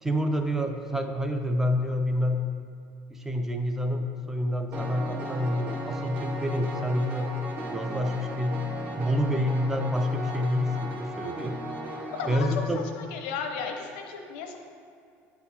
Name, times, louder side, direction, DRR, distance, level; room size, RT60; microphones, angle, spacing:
voice 1, 0.0-2.5 3.1-7.3 7.7-8.6 9.0-11.6 12.3-12.8, left 1 dB, 5° right, 5 dB, 0.3 m, -28 dB
Piano, 4.7-12.3, right 1 dB, 35° right, 0.7 m, -36 dB
voice 2, 12.2-12.5 12.9-14.6, left 6 dB, 85° left, 3 dB, 0.7 m, -34 dB
8.7 x 4.1 x 2.8 m, 2.3 s
cardioid pair, 155°, 5 cm